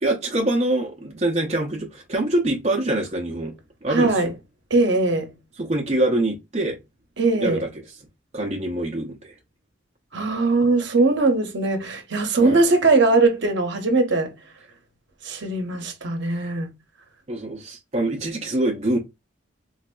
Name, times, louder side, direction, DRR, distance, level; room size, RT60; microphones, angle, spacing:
voice 1, 0.0-3.5 3.8-4.3 5.6-6.8 7.4-7.7 8.3-9.4 12.4-12.6 17.3-19.0, right 1 dB, 30° right, 0.6 m, -24 dB
voice 2, 3.9-4.3 4.7-5.3 7.2-7.6 10.1-14.3 15.2-16.7, right 3 dB, 60° right, 0.8 m, -20 dB
4.0 x 2.6 x 2.2 m
head